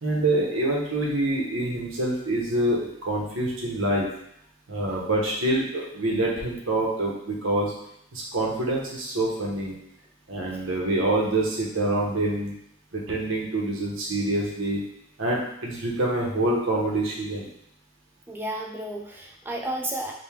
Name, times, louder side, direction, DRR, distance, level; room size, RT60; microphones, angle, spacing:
voice 1, 0.0-4.1 4.7-7.7 8.1-9.7 10.3-12.5 12.9-14.8 15.2-17.5, right 1 dB, 85° right, -3 dB, 1.0 m, -26 dB
voice 2, 18.3-20.1, right 1 dB, 10° right, -1 dB, 0.5 m, -32 dB
5.1 x 2.2 x 3.5 m, 0.75 s
head